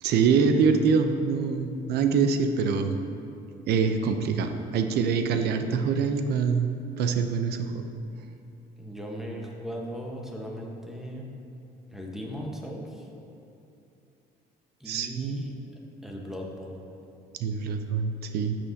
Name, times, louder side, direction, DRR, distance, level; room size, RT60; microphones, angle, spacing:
voice 1, 0.0-3.0 3.7-6.7 7.0-7.8 14.9-15.4 17.4-18.6, right 5 dB, 70° right, 7 dB, 0.6 m, -25 dB
voice 2, 8.8-11.3 11.9-13.1 14.8-15.6 16.0-16.8, equal, ahead, -1 dB, 1.2 m, -37 dB
12.0 x 6.1 x 2.8 m, 2.7 s
cardioid pair, 110°, 17 cm